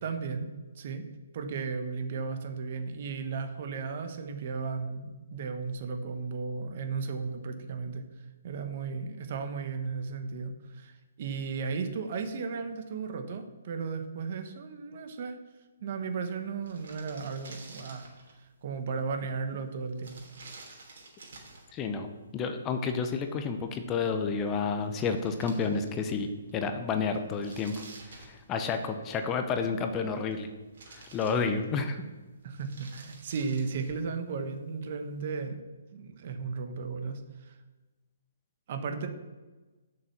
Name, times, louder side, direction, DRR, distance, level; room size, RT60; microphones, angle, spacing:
voice 1, 0.0-0.5 0.8-1.1 1.3-8.0 8.4-15.4 15.8-18.0 18.6-20.2 32.4-35.6 35.9-37.5 38.7-39.1, right 5 dB, 50° right, 7 dB, 1.3 m, -35 dB
sound 1, 16.2-16.3 16.5-18.4 20.0-21.7 24.5-24.6 24.8-26.1 26.5-26.6 27.1-28.9 29.9-30.4 30.7-31.9 32.4-34.1, right 3 dB, 65° right, 3.0 m, -50 dB
voice 2, 21.7-30.5 30.9-32.0, left 5 dB, 20° left, 6 dB, 0.8 m, -30 dB
6.8 x 6.5 x 7.3 m, 1.2 s
hypercardioid pair, 145°, 0 cm